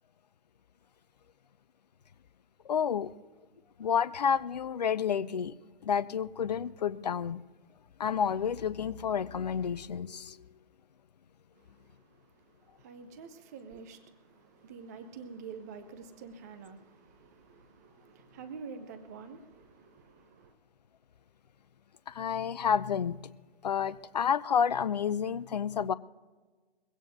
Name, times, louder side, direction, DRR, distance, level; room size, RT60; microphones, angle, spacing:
voice 1, 2.7-3.1 3.8-5.5 5.8-7.4 8.0-10.4 22.1-23.3 23.6-25.9, left 7 dB, 45° left, 0.5 m, -30 dB
voice 2, 11.5-20.5, right 5 dB, 15° right, 0.6 m, -48 dB
22.0 x 16.5 x 2.7 m
figure-of-eight pair, 145°, 31 cm